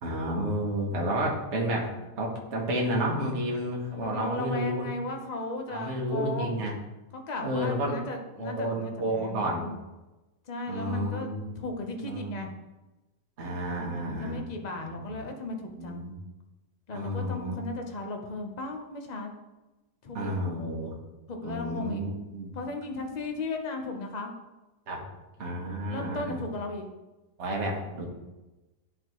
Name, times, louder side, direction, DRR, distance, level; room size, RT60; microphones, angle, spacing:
voice 1, 0.0-4.9 5.7-6.8 7.4-8.0 8.4-9.7 10.7-11.6 12.0-12.4 13.4-14.4 14.8-15.2 15.8-16.1 16.9-17.6 20.1-20.9 21.4-22.6 24.9-25.0 25.4-26.4 27.4-28.1, right 1 dB, 50° right, -1 dB, 1.3 m, -31 dB
voice 2, 3.9-6.6 7.1-9.8 10.5-11.3 11.6-12.5 14.0-16.0 16.9-19.3 20.0-20.3 21.3-22.0 22.5-24.3 25.9-26.9, left 2 dB, 40° left, 3 dB, 0.6 m, -36 dB
11.5 x 4.0 x 3.0 m, 1.1 s
omnidirectional pair, 1.8 m